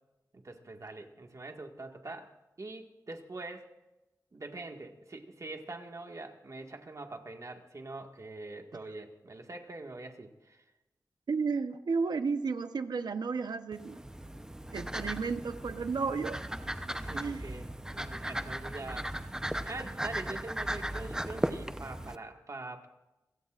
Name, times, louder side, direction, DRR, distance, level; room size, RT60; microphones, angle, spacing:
voice 1, 0.3-2.3 2.6-3.7 4.3-10.6 16.9-19.1 19.6-22.9, right 2 dB, 45° right, 4 dB, 1.8 m, -44 dB
voice 2, 11.3-14.0 14.7-16.4 17.1-17.4, right 4 dB, 80° right, 9 dB, 0.9 m, -32 dB
sound 1, 13.7-22.2, right 1 dB, 10° right, 0.8 m, -37 dB
29.0 x 16.5 x 2.5 m, 1.0 s
wide cardioid pair, 80°, 7 cm